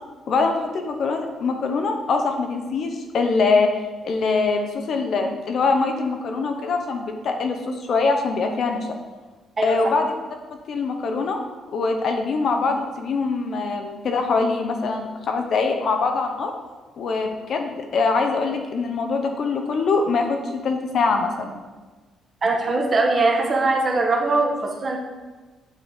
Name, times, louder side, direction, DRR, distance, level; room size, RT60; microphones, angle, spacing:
voice 1, 0.3-3.7 4.0-8.9 9.6-10.1 10.7-11.4 11.7-16.5 17.0-21.6, left 4 dB, 60° left, 4 dB, 0.8 m, -23 dB
voice 2, 22.4-25.0, right 3 dB, 35° right, 1 dB, 1.1 m, -21 dB
8.2 x 4.0 x 3.5 m, 1.3 s
cardioid pair, 90°, 0 cm